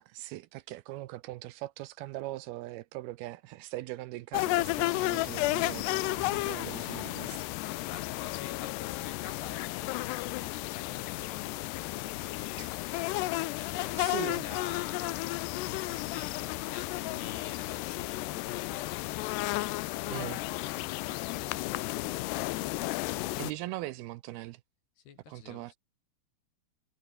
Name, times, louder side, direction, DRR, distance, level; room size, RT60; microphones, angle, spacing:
voice 1, 0.0-7.5 12.6-12.7 14.0-14.6 20.1-20.5 23.4-24.6 25.3-25.7, right 17 dB, 80° right, 2.5 m, -40 dB
sound 1, 4.3-23.5, left 20 dB, 90° left, 2.8 m, -33 dB
voice 2, 7.8-12.7 13.5-19.2 20.5-22.7 25.0-25.8, left 8 dB, 75° left, 5.3 m, -48 dB
omnidirectional pair, 4.8 m